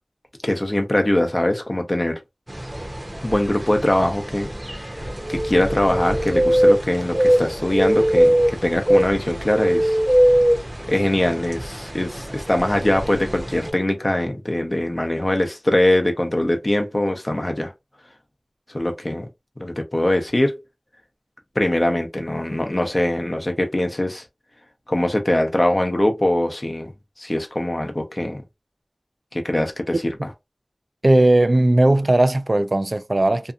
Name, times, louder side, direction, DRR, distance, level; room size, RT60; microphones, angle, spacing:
voice 1, 0.4-2.2 3.2-5.0 5.3-10.0 10.9-17.7 18.7-19.3 19.6-20.6 21.6-24.2 24.9-26.9 27.2-28.4 29.3-30.1, left 1 dB, 45° left, 0.7 m, -22 dB
sound 1, 2.5-13.7, equal, 30° right, 0.7 m, -22 dB
voice 2, 31.0-33.5, right 1 dB, 60° right, 0.3 m, -17 dB
2.7 x 2.5 x 2.4 m
wide cardioid pair, 45°, 0 cm